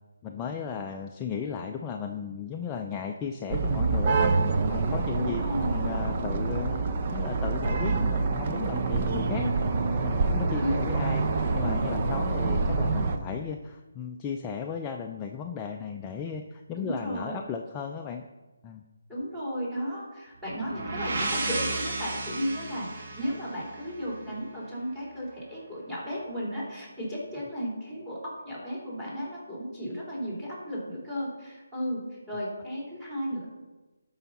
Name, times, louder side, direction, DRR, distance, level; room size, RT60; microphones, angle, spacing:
voice 1, 0.2-4.3 4.7-6.8 7.1-9.5 9.9-18.3 18.6-18.8, left 6 dB, 15° left, 2 dB, 0.5 m, -35 dB
sound 1, 3.5-13.2, right 4 dB, 35° right, 0.8 m, -26 dB
voice 2, 5.2-5.8 10.5-10.8 16.8-17.4 19.1-33.5, equal, 10° right, -6 dB, 3.4 m, -34 dB
sound 2, 20.4-24.3, right 2 dB, 50° right, 1.7 m, -33 dB
12.5 x 5.7 x 4.1 m, 1.2 s
figure-of-eight pair, 155°, 0 cm